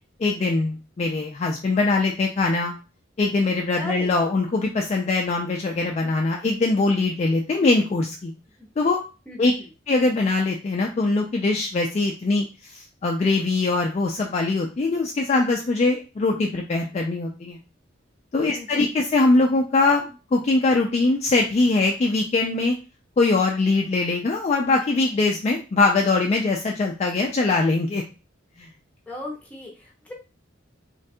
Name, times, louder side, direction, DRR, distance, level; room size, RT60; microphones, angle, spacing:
voice 1, 0.2-2.7 3.2-8.3 8.8-9.0 9.4-9.5 9.9-17.6 18.3-22.7 23.2-28.0 28.6-28.7, left 3 dB, 35° left, 1 dB, 0.3 m, -22 dB
voice 2, 3.8-4.2 9.3-9.7 18.5-18.8 29.1-30.1, left 1 dB, 10° left, -2 dB, 0.7 m, -37 dB
3.3 x 2.2 x 2.7 m, 0.31 s
head